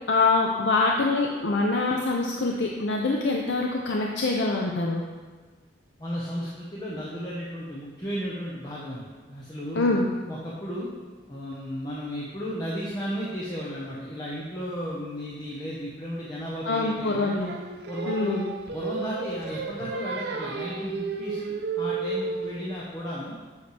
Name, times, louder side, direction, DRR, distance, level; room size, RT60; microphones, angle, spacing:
voice 1, 0.1-5.0 9.7-10.1 16.7-17.5 18.1-18.4, left 3 dB, 75° left, 0 dB, 0.6 m, -24 dB
voice 2, 6.0-10.9 11.3-17.4 17.9-18.4 18.7-23.3, equal, 25° left, -6 dB, 0.9 m, -34 dB
Singing, 17.4-22.7, right 4 dB, 65° right, 0.7 m, -32 dB
8.1 x 6.4 x 3.3 m, 1.4 s
head